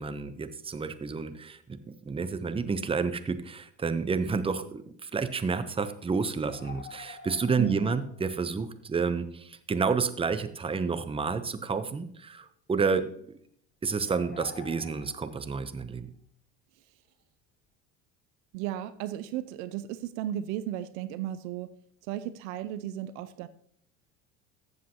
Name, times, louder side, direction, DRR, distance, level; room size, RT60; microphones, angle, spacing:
voice 1, 0.0-1.8 2.0-13.4 13.8-16.1, right 5 dB, 15° right, 0.7 m, -30 dB
sound 1, 6.4-8.2 8.5-8.6 11.1-11.8 12.2-12.5 14.0-15.5, left 6 dB, 25° left, 1.1 m, -47 dB
voice 2, 7.6-8.0 18.5-21.7 22.1-23.5, right 12 dB, 65° right, 0.6 m, -34 dB
14.0 x 7.4 x 2.9 m
hypercardioid pair, 75°, 39 cm